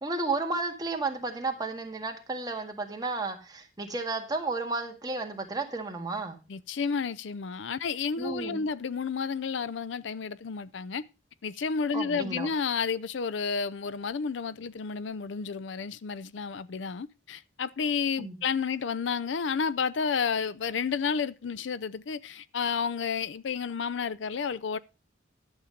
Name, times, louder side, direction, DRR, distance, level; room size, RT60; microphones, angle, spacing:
voice 1, 0.0-6.4 8.2-8.6 11.9-12.5 18.2-18.4, right 3 dB, 20° right, 1.8 m, -32 dB
voice 2, 6.5-11.0 11.4-24.8, left 5 dB, 80° left, 0.5 m, -31 dB
11.5 x 7.3 x 5.0 m
head